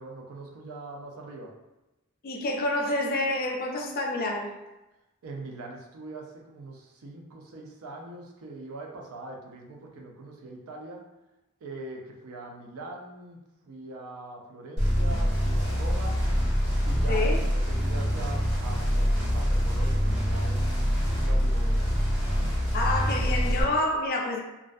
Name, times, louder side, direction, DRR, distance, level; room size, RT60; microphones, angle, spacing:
voice 1, 0.0-1.5 5.2-11.0 11.6-13.4 13.6-16.2 16.8-21.8 22.1-22.3, right 2 dB, 70° right, 0 dB, 0.5 m, -42 dB
voice 2, 2.2-4.5 17.1-17.4 22.7-24.4, left 2 dB, 40° left, 1 dB, 0.3 m, -28 dB
sound 1, 14.8-23.6, equal, 50° right, 1.2 m, -25 dB
2.5 x 2.2 x 2.4 m, 0.98 s
head